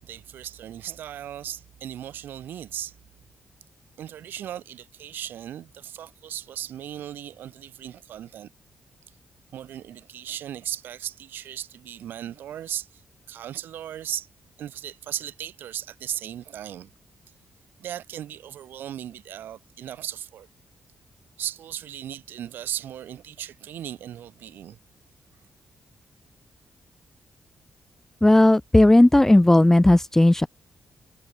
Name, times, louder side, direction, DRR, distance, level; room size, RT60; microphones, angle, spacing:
voice 1, 0.0-2.9 4.0-8.5 9.5-13.0 13.3-14.3 14.6-16.9 17.8-20.5 21.4-24.8, right 11 dB, 80° right, 6.5 m, -36 dB
voice 2, 28.2-30.5, left 1 dB, 10° left, 0.6 m, -15 dB
cardioid pair, 60°, 3 cm